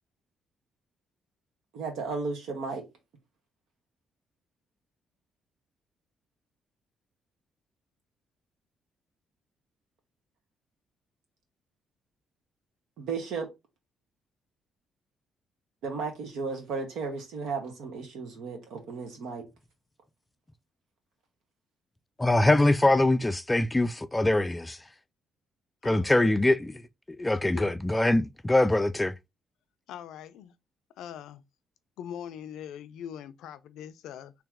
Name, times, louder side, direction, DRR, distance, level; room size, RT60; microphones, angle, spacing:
voice 1, 1.7-2.8 13.0-13.5 15.8-19.4, right 4 dB, 85° right, 1.4 m, -34 dB
voice 2, 22.2-24.8 25.8-26.8 27.1-29.1, left 1 dB, 15° left, 0.3 m, -23 dB
voice 3, 25.8-26.4 27.5-27.8 29.9-30.5 31.0-31.4 32.0-34.3, left 9 dB, 85° left, 0.4 m, -42 dB
3.3 x 2.9 x 3.6 m
cardioid pair, 90°, 0 cm